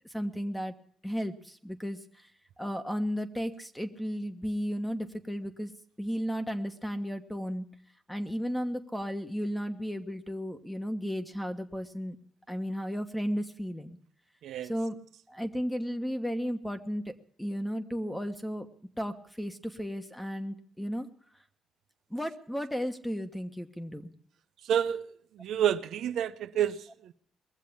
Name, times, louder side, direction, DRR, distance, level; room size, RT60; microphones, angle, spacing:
voice 1, 0.1-0.7 1.0-2.0 2.6-5.7 6.0-7.7 8.1-12.2 12.5-14.0 14.6-15.0 15.3-18.7 19.0-21.1 22.1-24.1, equal, 5° left, 1.3 m, -34 dB
voice 2, 24.6-25.1 25.3-27.1, right 10 dB, 75° right, 0.7 m, -29 dB
20.5 x 7.5 x 8.5 m
cardioid pair, 90°, 0 cm